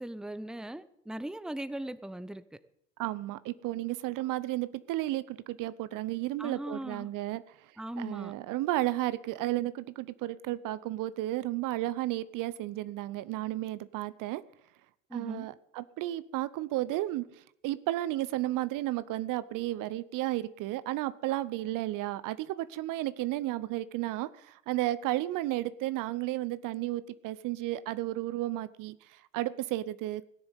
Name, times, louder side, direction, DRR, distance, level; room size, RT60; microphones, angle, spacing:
voice 1, 0.0-2.4 6.4-7.1 7.8-8.3 15.1-15.5, right 1 dB, ahead, 14 dB, 0.8 m, -39 dB
voice 2, 3.0-7.4 8.0-14.4 15.1-30.3, right 16 dB, 55° right, 17 dB, 0.7 m, -33 dB
17.0 x 6.9 x 8.3 m, 0.74 s
hypercardioid pair, 60°, 38 cm